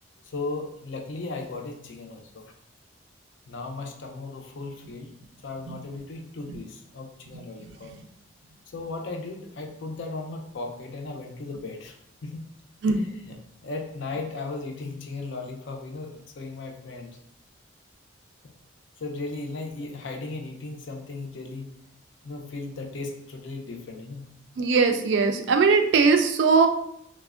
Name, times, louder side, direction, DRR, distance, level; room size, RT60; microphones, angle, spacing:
voice 1, 0.2-2.5 3.5-5.1 5.4-7.9 8.7-12.0 12.2-12.4 12.9-13.4 13.6-17.2 19.0-21.7 22.2-24.2, left 3 dB, 70° left, 2 dB, 0.5 m, -36 dB
voice 2, 24.6-26.7, right 4 dB, 65° right, 6 dB, 0.3 m, -20 dB
3.2 x 2.1 x 2.4 m, 0.74 s
head